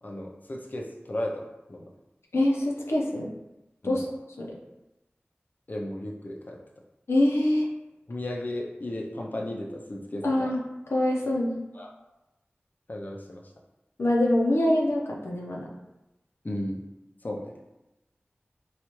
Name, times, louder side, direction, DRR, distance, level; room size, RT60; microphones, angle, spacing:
voice 1, 0.0-1.9 3.8-4.0 5.7-6.6 8.1-10.5 11.7-11.9 12.9-13.4 16.4-16.8 17.2-17.5, left 1 dB, 45° left, -1 dB, 0.5 m, -34 dB
voice 2, 2.3-3.3 3.8-4.1 4.4-4.5 7.1-7.7 10.2-10.6 10.9-11.6 14.0-15.7, left 1 dB, 85° left, -2 dB, 0.6 m, -24 dB
4.3 x 2.3 x 3.0 m, 0.97 s
wide cardioid pair, 45°, 4 cm